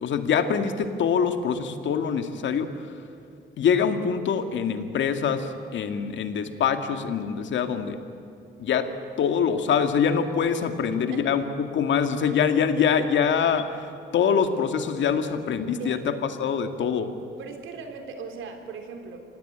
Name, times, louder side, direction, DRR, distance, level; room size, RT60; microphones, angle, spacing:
voice 1, 0.0-2.7 3.6-8.0 8.6-8.9 9.2-13.6 14.1-16.1 16.4-17.1, left 7 dB, 70° left, 7 dB, 2.1 m, -24 dB
voice 2, 15.8-16.2 17.4-19.2, right 5 dB, 80° right, 5 dB, 3.7 m, -39 dB
26.5 x 18.0 x 8.8 m, 2.6 s
cardioid pair, 90°, 20 cm